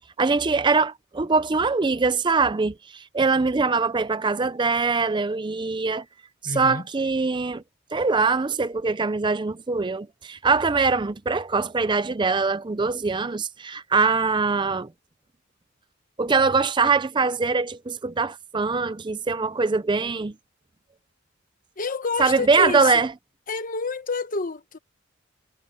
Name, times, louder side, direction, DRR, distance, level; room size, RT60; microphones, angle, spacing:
voice 1, 0.2-6.0 6.4-7.6 7.9-14.9 16.2-20.3 22.2-23.1, right 4 dB, 20° right, 0.5 m, -23 dB
voice 2, 6.4-6.8 21.8-23.1 23.5-24.8, left 4 dB, 40° left, 1.1 m, -29 dB
head